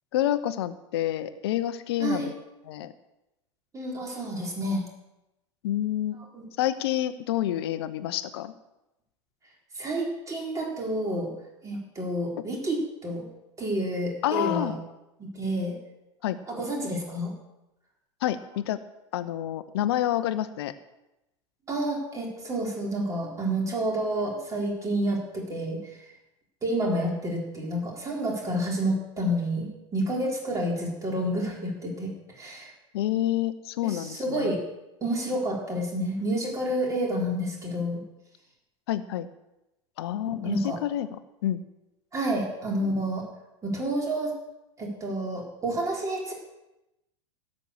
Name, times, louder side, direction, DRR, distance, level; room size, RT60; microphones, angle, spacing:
voice 1, 0.1-2.3 2.7-2.9 5.6-6.2 6.6-8.5 14.2-14.8 16.2-16.4 18.2-18.8 19.1-20.7 32.9-34.5 38.9-39.3 40.0-41.6, left 12 dB, 55° left, 13 dB, 0.8 m, -28 dB
voice 2, 3.7-4.8 6.3-6.4 9.8-11.3 11.6-13.3 13.6-14.7 15.2-15.8 16.5-17.3 21.7-25.8 26.6-32.7 33.8-34.6 35.0-38.0 40.4-40.8 42.1-43.2 43.6-44.3 44.8-46.3, right 1 dB, 20° right, -1 dB, 4.0 m, -29 dB
16.0 x 7.4 x 6.7 m, 0.91 s
figure-of-eight pair, 85°, 16 cm